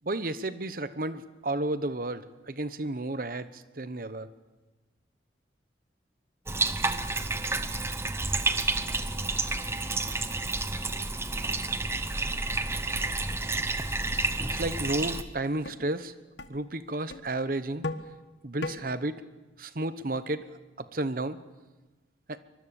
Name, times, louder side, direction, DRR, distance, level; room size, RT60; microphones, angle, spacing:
voice 1, 0.0-3.5 3.8-4.3 14.5-16.1 16.5-17.9 18.4-19.2 19.6-20.4 20.9-21.4 22.3-22.4, right 2 dB, 50° right, 13 dB, 1.0 m, -32 dB
Bathtub (filling or washing), 6.5-15.2, right 3 dB, 15° right, 0.9 m, -30 dB
sound 1, 14.9-15.0 15.6-15.8 16.4-16.5 17.1-17.3 17.8-18.1 18.6-18.8, left 2 dB, 75° left, 1.3 m, -35 dB
24.5 x 22.0 x 7.1 m, 1.2 s
head